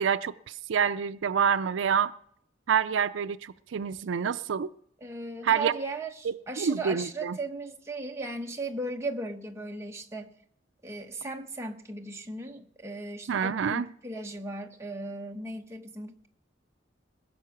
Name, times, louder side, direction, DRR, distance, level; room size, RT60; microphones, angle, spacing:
voice 1, 0.0-2.1 2.7-4.7 5.4-5.7 6.2-7.4 13.3-13.9, right 7 dB, 80° right, 0.4 m, -27 dB
voice 2, 5.0-10.3 10.8-16.3, right 2 dB, 15° right, 1.0 m, -37 dB
20.0 x 7.2 x 5.9 m
head